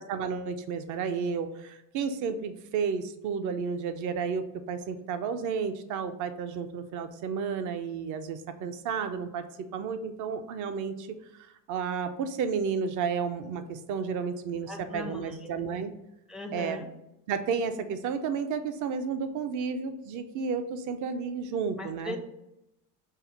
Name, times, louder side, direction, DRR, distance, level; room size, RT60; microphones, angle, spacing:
voice 1, 0.0-9.4 9.7-11.1 11.7-15.9 16.5-16.8 17.3-22.2, right 6 dB, 50° right, 9 dB, 0.6 m, -32 dB
voice 2, 14.7-15.8 16.3-16.9 21.8-22.2, left 2 dB, ahead, 3 dB, 0.4 m, -39 dB
5.5 x 2.0 x 4.4 m, 0.89 s
supercardioid pair, 110°, 39 cm